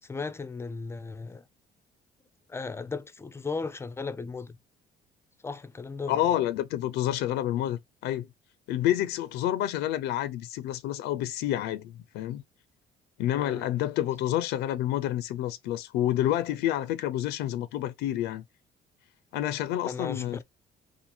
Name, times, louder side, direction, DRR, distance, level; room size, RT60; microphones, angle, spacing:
voice 1, 0.0-1.4 2.5-4.6 5.4-6.2 13.3-13.7 19.8-20.4, left 4 dB, 15° left, 0.4 m, -36 dB
voice 2, 6.1-8.3 8.7-12.4 13.2-18.4 19.3-20.4, left 12 dB, 85° left, 0.4 m, -29 dB
2.6 x 2.5 x 4.2 m
cardioid pair, 110°, 17 cm